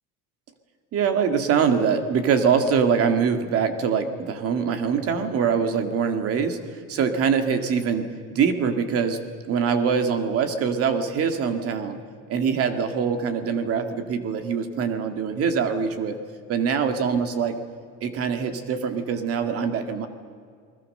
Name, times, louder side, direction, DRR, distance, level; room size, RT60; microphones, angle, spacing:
voice 1, 0.9-9.2 9.5-12.0 12.3-16.2 16.5-17.6 18.0-20.1, right 6 dB, 40° right, 7 dB, 2.2 m, -23 dB
29.5 x 20.5 x 6.7 m, 2.1 s
cardioid pair, 165°, 35 cm